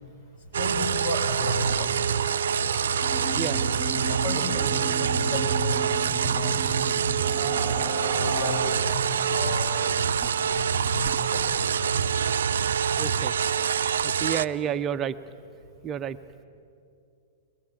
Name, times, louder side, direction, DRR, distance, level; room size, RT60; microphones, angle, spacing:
sound 1, 0.5-14.4, right 7 dB, 75° right, 0.6 m, -26 dB
voice 1, 0.6-2.1 3.4-7.0 8.0-12.0 13.7-14.0, left 1 dB, 60° left, 3 dB, 5.7 m, -34 dB
sound 2, 3.0-8.6, right 2 dB, 30° left, 4.3 m, -35 dB
voice 2, 13.0-13.3 14.2-15.2 15.8-16.2, right 9 dB, 30° right, 9 dB, 0.7 m, -29 dB
22.5 x 22.5 x 8.8 m, 2.5 s
hypercardioid pair, 110°, 0 cm